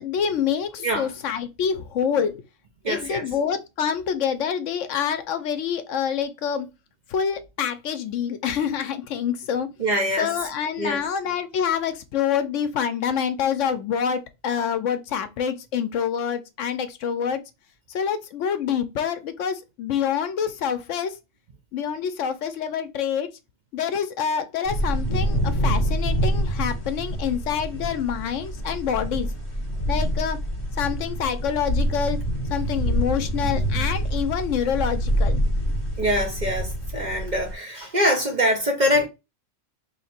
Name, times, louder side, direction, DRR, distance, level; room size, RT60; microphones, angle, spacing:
voice 1, 0.0-2.4 2.9-6.7 7.1-17.4 17.9-21.2 21.7-23.3 23.7-29.3 29.9-30.4 30.7-32.2 32.5-35.4, left 8 dB, 75° left, 0.9 m, -26 dB
voice 2, 2.8-3.2 9.8-10.3 10.8-11.0 36.0-39.1, equal, 40° right, 0.7 m, -23 dB
sound 1, 24.6-37.5, equal, 25° left, 1.9 m, -26 dB
3.2 x 2.8 x 4.3 m
omnidirectional pair, 1.4 m